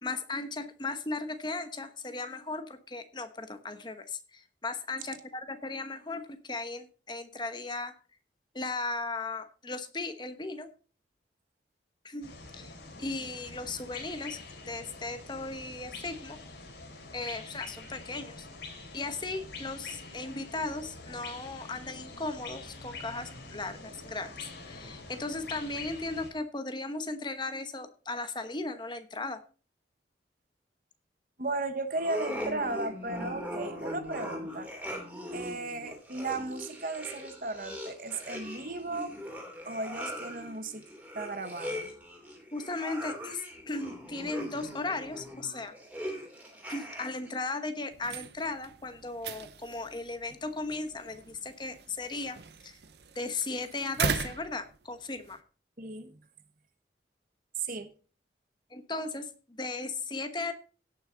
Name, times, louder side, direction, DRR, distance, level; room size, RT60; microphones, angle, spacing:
voice 1, 0.0-8.0 8.5-10.7 12.0-12.7 13.0-16.4 17.1-18.5 18.9-29.4 42.5-45.7 46.7-52.8 53.1-55.4 58.7-60.5, left 3 dB, 25° left, 9 dB, 1.1 m, -37 dB
sound 1, 12.2-26.3, left 3 dB, 70° left, 3.8 m, -46 dB
voice 2, 31.4-34.7 35.3-39.1 39.6-40.8 41.1-41.9 55.8-56.1 57.6-57.9, right 2 dB, 50° right, 10 dB, 1.1 m, -35 dB
sound 2, 32.0-47.3, equal, 10° right, 2.8 m, -40 dB
sound 3, 47.9-55.4, right 5 dB, 65° right, 0.9 m, -39 dB
17.0 x 6.5 x 3.9 m, 0.37 s
head